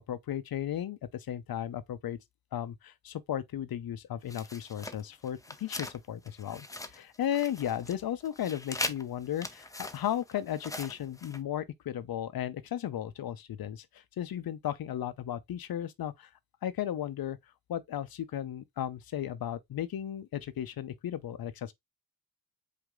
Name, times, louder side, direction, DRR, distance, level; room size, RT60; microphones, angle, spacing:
voice 1, 0.0-2.2 2.5-16.3 16.6-17.4 17.7-21.7, left 10 dB, 70° left, 0.7 m, -35 dB
sound 1, 4.3-6.0 6.2-11.4, left 2 dB, 10° left, 0.7 m, -41 dB
5.0 x 2.8 x 3.6 m
cardioid pair, 60°, 37 cm